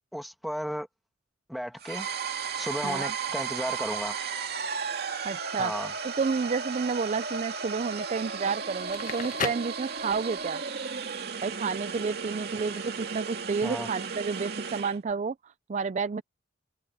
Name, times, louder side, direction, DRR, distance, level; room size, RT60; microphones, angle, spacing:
voice 1, 0.1-0.9 1.5-2.1 2.5-4.2 5.6-5.9 13.6-13.9, equal, ahead, 2.0 m, -34 dB
sound 1, 1.8-15.0, right 5 dB, 60° right, 2.7 m, -34 dB
voice 2, 5.2-5.7 6.2-10.6 11.4-15.3 15.7-16.2, right 5 dB, 40° right, 0.4 m, -30 dB
Crackle, 8.7-10.5, left 6 dB, 45° left, 1.3 m, -35 dB
head